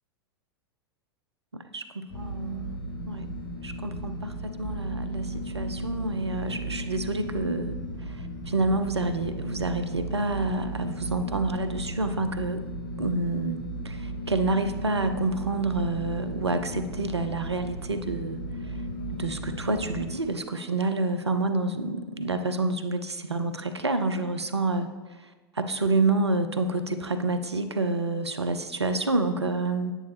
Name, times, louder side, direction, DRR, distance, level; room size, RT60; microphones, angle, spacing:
voice 1, 1.5-2.7 3.0-3.3 3.6-7.7 8.1-12.6 13.0-18.7 19.1-24.9 25.2-25.3 25.5-29.9, right 2 dB, 90° right, 9 dB, 0.7 m, -28 dB
sound 1, 2.1-20.1, right 1 dB, 45° left, 3.4 m, -35 dB
9.8 x 9.1 x 3.4 m, 1.3 s
figure-of-eight pair, 95°, 14 cm